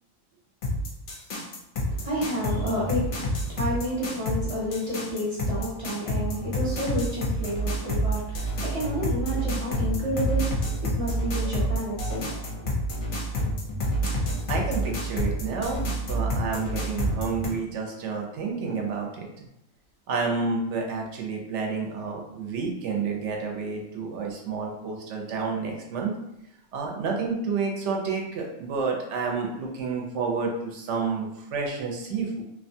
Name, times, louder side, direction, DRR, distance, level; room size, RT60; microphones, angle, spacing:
sound 1, 0.6-17.5, equal, 55° left, 0.6 m, -28 dB
voice 1, 1.9-12.9, equal, 30° right, -6 dB, 0.7 m, -30 dB
voice 2, 14.5-19.3 20.1-26.2 26.7-32.4, right 4 dB, 65° right, 0 dB, 0.9 m, -30 dB
2.7 x 2.2 x 2.6 m, 0.86 s
omnidirectional pair, 1.4 m